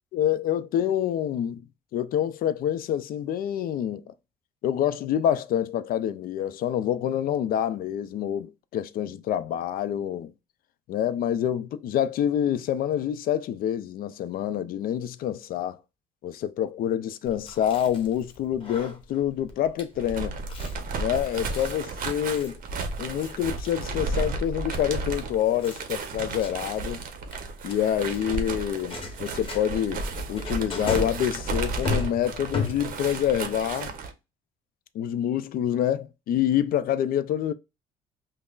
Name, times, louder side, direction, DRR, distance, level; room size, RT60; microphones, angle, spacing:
voice 1, 0.1-1.6 1.9-4.1 4.6-10.3 10.9-15.8 16.2-20.3 21.0-22.6 23.0-27.0 27.6-30.0 30.3-34.0 34.9-37.5, left 10 dB, 60° left, 0.4 m, -27 dB
Chewing mastication, 17.3-33.2, left 3 dB, 30° left, 1.0 m, -38 dB
sound 1, 19.9-34.1, right 3 dB, 55° right, 0.7 m, -33 dB
5.3 x 2.0 x 2.4 m
cardioid pair, 110°, 17 cm